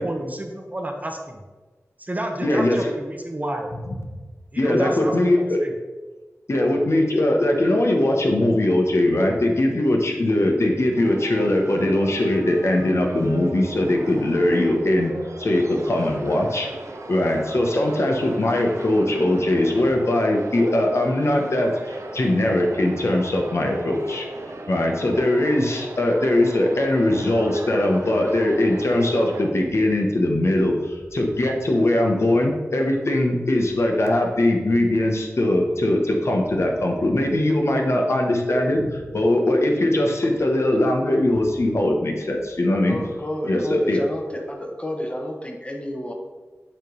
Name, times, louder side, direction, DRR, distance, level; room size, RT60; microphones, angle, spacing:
voice 1, 0.0-1.4 2.0-3.7 4.5-5.7, right 1 dB, 30° right, 2 dB, 0.9 m, -30 dB
voice 2, 2.4-2.9 3.9-4.0 4.6-5.6 6.5-15.1 15.4-16.7 17.1-24.3 24.7-43.0 43.4-44.0, left 1 dB, 60° left, 1 dB, 1.0 m, -21 dB
sound 1, 10.9-29.5, right 2 dB, 75° right, 0.8 m, -38 dB
voice 3, 42.9-46.1, left 1 dB, 25° left, 2 dB, 1.2 m, -31 dB
7.4 x 3.2 x 5.3 m, 1.3 s
wide cardioid pair, 60°, 5 cm